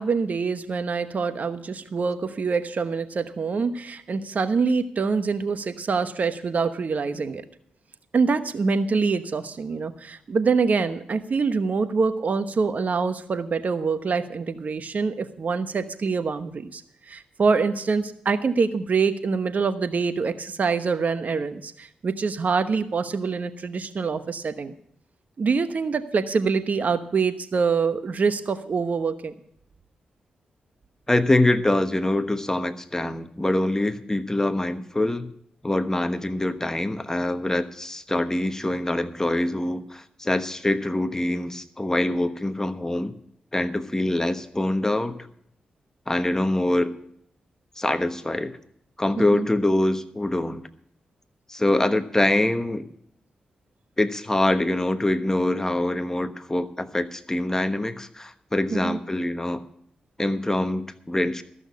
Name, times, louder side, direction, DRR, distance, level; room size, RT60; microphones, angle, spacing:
voice 1, 0.0-7.4 8.1-24.7 25.4-29.3 49.2-49.5 58.7-59.0, right 5 dB, 60° right, 10 dB, 1.1 m, -25 dB
voice 2, 31.1-35.3 35.6-43.1 43.5-45.2 46.1-46.9 47.8-48.6 49.0-50.6 51.5-52.9 54.0-59.6 60.2-61.4, left 1 dB, 15° left, 9 dB, 1.1 m, -24 dB
14.0 x 6.3 x 8.4 m, 0.69 s
cardioid pair, 50°, 3 cm